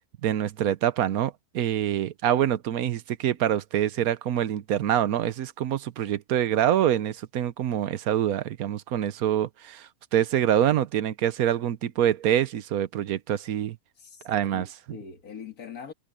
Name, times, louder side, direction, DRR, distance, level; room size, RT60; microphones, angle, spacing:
voice 1, 0.2-13.8 14.2-15.0, right 10 dB, 80° right, 1.2 m, -25 dB
voice 2, 14.0-15.9, left 6 dB, 85° left, 2.2 m, -42 dB
omnidirectional pair, 1.5 m